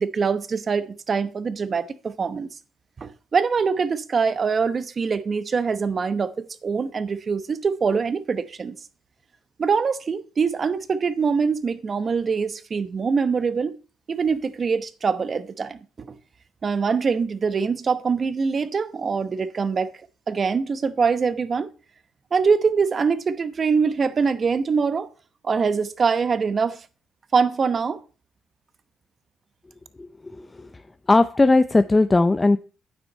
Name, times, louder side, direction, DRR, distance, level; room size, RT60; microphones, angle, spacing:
voice 1, 0.0-2.5 3.0-8.8 9.6-13.8 14.1-16.1 16.6-19.9 20.3-21.7 22.3-25.1 25.4-26.8 27.3-28.0, right 5 dB, 40° right, 0.9 m, -23 dB
voice 2, 31.1-32.6, left 2 dB, 20° left, 0.5 m, -17 dB
9.2 x 6.0 x 5.4 m
cardioid pair, 90°, 0 cm